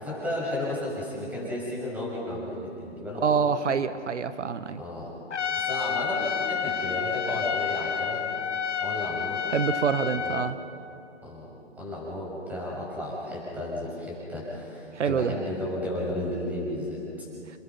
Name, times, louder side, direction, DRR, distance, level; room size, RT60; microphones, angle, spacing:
voice 1, 0.0-3.3 4.8-5.1 5.6-8.4 8.8-9.5 10.2-10.4 11.2-11.5 11.8-17.3, left 1 dB, 5° right, -4 dB, 6.7 m, -33 dB
voice 2, 3.2-4.8 9.5-10.6 14.9-15.3, right 6 dB, 75° right, 12 dB, 1.2 m, -26 dB
Trumpet, 5.3-10.5, left 7 dB, 75° left, 1.7 m, -30 dB
29.5 x 20.5 x 6.0 m, 2.6 s
hypercardioid pair, 145°, 36 cm